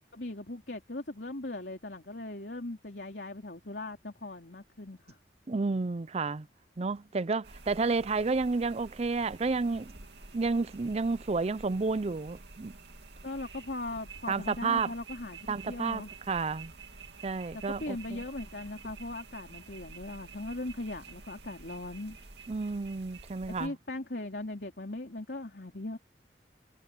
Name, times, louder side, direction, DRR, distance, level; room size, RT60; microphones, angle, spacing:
voice 1, 0.1-5.2 13.2-16.1 17.5-22.2 23.5-26.0, left 2 dB, 65° left, 3.7 m, -39 dB
voice 2, 5.5-6.5 6.8-9.9 10.3-12.7 14.3-14.9 15.5-16.7 17.2-18.2 22.5-23.7, right 4 dB, 35° right, 0.5 m, -31 dB
sound 1, 7.4-23.7, right 4 dB, 75° right, 2.5 m, -49 dB
head